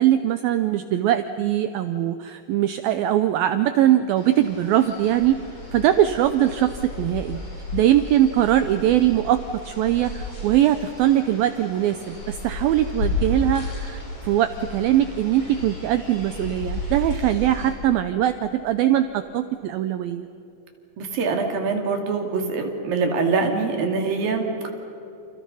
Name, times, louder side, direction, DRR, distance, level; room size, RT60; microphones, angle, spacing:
voice 1, 0.0-5.4 5.7-7.4 7.7-9.4 9.7-20.3, right 12 dB, 85° right, 9 dB, 2.1 m, -21 dB
sound 1, 4.2-17.7, left 2 dB, 30° left, 7.2 m, -33 dB
voice 2, 21.0-24.7, right 4 dB, 55° right, 3 dB, 4.1 m, -24 dB
29.0 x 28.5 x 5.6 m, 2.9 s
omnidirectional pair, 5.1 m